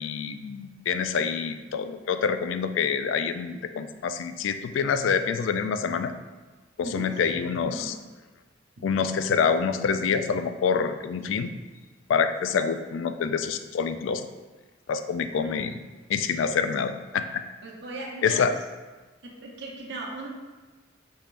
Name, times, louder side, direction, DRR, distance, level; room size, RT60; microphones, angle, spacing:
voice 1, 0.0-6.1 6.8-7.9 8.8-11.5 12.1-14.2 14.9-15.8 16.1-17.4 18.2-18.6, left 6 dB, 85° left, 9 dB, 0.3 m, -26 dB
voice 2, 7.7-8.0 8.8-8.9 15.4-15.6 17.6-18.5 19.2-20.3, right 2 dB, 65° right, -2 dB, 0.8 m, -38 dB
5.4 x 3.5 x 2.5 m, 1.2 s
head